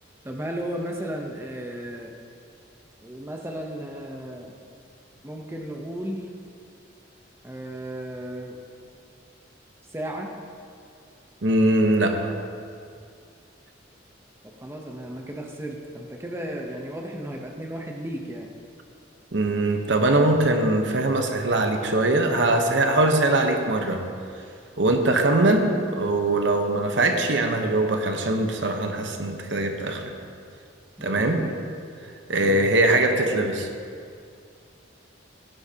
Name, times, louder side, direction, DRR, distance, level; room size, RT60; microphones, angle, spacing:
voice 1, 0.2-2.1 3.0-4.6 5.2-6.2 7.4-8.6 9.9-10.3 14.6-18.5 31.0-31.5 32.4-32.7, right 1 dB, 15° right, 0 dB, 0.8 m, -34 dB
voice 2, 11.4-12.3 19.3-24.0 24.8-30.1 31.0-31.4 32.3-33.7, right 2 dB, 70° right, 4 dB, 1.0 m, -22 dB
17.0 x 10.0 x 2.8 m, 2.3 s
head